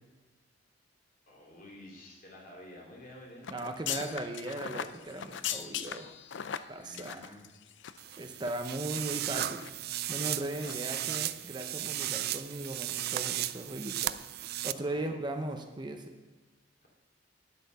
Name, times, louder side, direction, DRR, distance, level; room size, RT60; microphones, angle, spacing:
voice 1, 1.3-3.5 6.8-7.5 10.5-11.1 14.8-15.1 16.8-16.9, left 1 dB, 50° left, -2 dB, 2.9 m, -51 dB
sound 1, 3.4-8.1 8.4-8.5 9.0-9.7 10.1-10.3 10.6-10.8 11.1-11.2, left 9 dB, 65° left, 0.5 m, -39 dB
voice 2, 3.5-6.1 6.7-7.4 8.2-9.7 10.1-14.2 14.6-16.2, right 1 dB, 25° right, 4 dB, 0.7 m, -38 dB
sound 2, 8.0-14.7, right 13 dB, 55° right, 0.4 m, -35 dB
10.5 x 7.9 x 5.4 m, 1.3 s
head